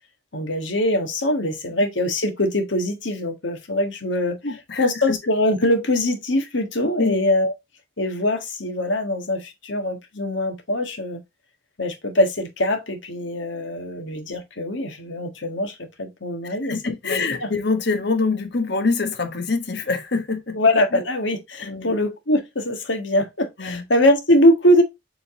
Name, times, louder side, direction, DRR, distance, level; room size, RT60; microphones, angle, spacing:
voice 1, 0.3-4.4 4.8-7.5 8.0-11.2 11.8-16.8 17.0-17.2 20.5-24.8, left 1 dB, 80° left, 1.6 m, -22 dB
voice 2, 4.4-5.1 7.0-7.1 16.5-20.6 21.6-21.9 23.6-23.8, left 4 dB, 60° left, 1.2 m, -25 dB
7.2 x 3.9 x 3.7 m
head